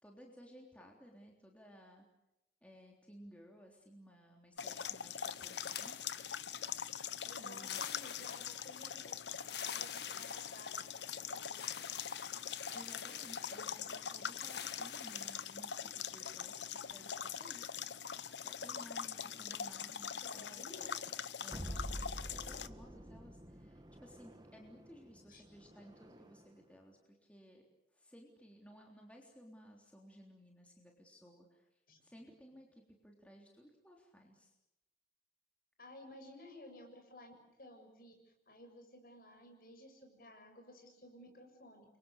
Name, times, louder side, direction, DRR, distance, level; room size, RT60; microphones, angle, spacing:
voice 1, 0.0-2.1 2.6-6.0 7.4-7.8 12.7-17.8 18.3-20.6 21.4-27.6 27.9-31.7 32.0-34.5, equal, 10° left, 0 dB, 3.5 m, -57 dB
sound 1, 4.6-22.7, left 8 dB, 90° left, 1.0 m, -43 dB
sound 2, 5.3-6.8 7.5-8.9 9.4-11.1 11.5-13.9 14.3-15.6, left 9 dB, 70° left, 1.7 m, -49 dB
voice 2, 7.2-12.3 19.2-19.5 20.2-20.9 25.3-25.4 31.9-32.0 35.8-38.1 38.5-42.0, left 1 dB, 55° left, 4 dB, 7.0 m, -56 dB
sound 3, 21.5-26.6, equal, 25° right, 1.9 m, -48 dB
29.5 x 24.5 x 6.7 m, 0.92 s
head